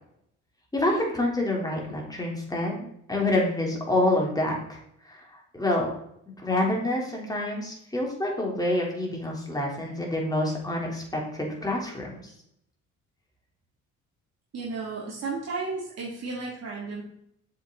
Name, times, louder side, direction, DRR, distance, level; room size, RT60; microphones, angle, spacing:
voice 1, 0.7-4.8 5.1-5.2 5.5-5.9 6.4-12.2, left 1 dB, 10° left, -2 dB, 3.5 m, -27 dB
voice 2, 14.5-17.0, right 4 dB, 55° right, -5 dB, 2.7 m, -33 dB
7.5 x 7.5 x 4.0 m, 0.72 s
cardioid pair, 90°, 30 cm